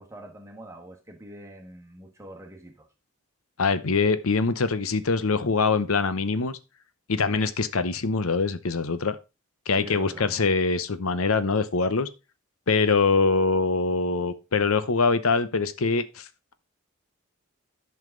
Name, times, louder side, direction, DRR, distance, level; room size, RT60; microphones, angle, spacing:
voice 1, 0.0-2.9 9.8-10.4, right 1 dB, 15° right, 1.5 m, -44 dB
voice 2, 3.6-6.6 7.1-9.2 9.7-12.1 12.7-16.5, left 4 dB, 85° left, 0.8 m, -24 dB
11.0 x 5.7 x 3.8 m
head